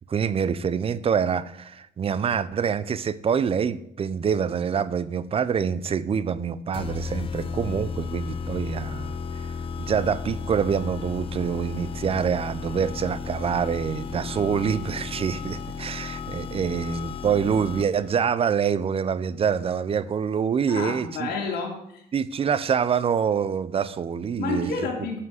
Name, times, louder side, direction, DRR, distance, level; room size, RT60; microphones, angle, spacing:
voice 1, 0.1-21.3 22.1-24.9, right 7 dB, 35° right, 17 dB, 0.6 m, -26 dB
sound 1, 6.7-18.1, left 5 dB, 30° left, 0.8 m, -34 dB
voice 2, 20.7-22.0 24.4-25.2, left 4 dB, 70° left, -1 dB, 3.0 m, -30 dB
9.7 x 5.8 x 7.9 m, 0.77 s
cardioid pair, 110°, 17 cm